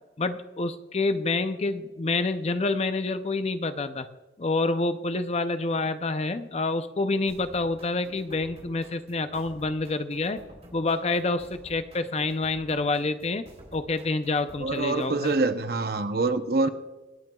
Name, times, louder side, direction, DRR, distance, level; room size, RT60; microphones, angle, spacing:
voice 1, 0.2-4.1 4.4-10.4 10.7-13.5 13.7-15.3, left 3 dB, 35° left, 0.5 m, -27 dB
sound 1, 7.3-15.5, right 1 dB, 35° right, 3.4 m, -51 dB
voice 2, 14.6-16.7, right 3 dB, 55° right, 0.8 m, -25 dB
25.5 x 8.9 x 2.3 m
head